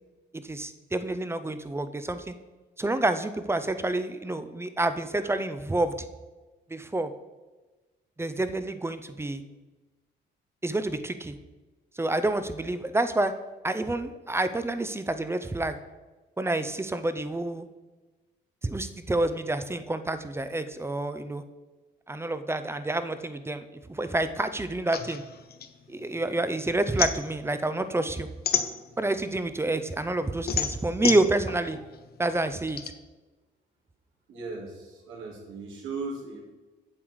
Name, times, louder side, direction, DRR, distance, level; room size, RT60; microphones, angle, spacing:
voice 1, 0.3-2.3 2.8-5.9 6.7-7.1 8.2-9.4 10.6-11.4 12.0-13.3 13.6-15.8 16.4-17.7 18.6-21.4 22.1-25.2 25.9-28.3 29.0-31.8 32.2-32.8, right 2 dB, 10° right, 11 dB, 0.6 m, -28 dB
sound 1, 24.9-26.4 26.7-29.3 29.7-32.9, left 7 dB, 50° left, 0.8 m, -30 dB
voice 2, 34.3-36.4, right 3 dB, 85° right, -3 dB, 2.7 m, -37 dB
7.8 x 7.5 x 4.7 m, 1.2 s
cardioid pair, 90°, 20 cm